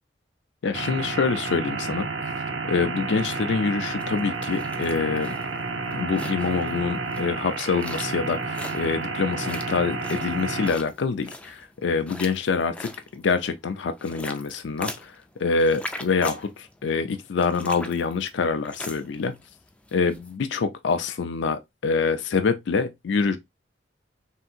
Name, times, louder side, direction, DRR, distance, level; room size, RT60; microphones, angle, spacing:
voice 1, 0.6-2.1 2.6-5.3 5.9-19.4 19.9-23.4, left 4 dB, 70° left, 0.4 m, -26 dB
sound 1, 0.7-10.7, right 4 dB, 75° right, 0.6 m, -31 dB
sound 2, 4.0-20.3, left 1 dB, 5° left, 0.3 m, -41 dB
3.5 x 2.7 x 2.4 m
head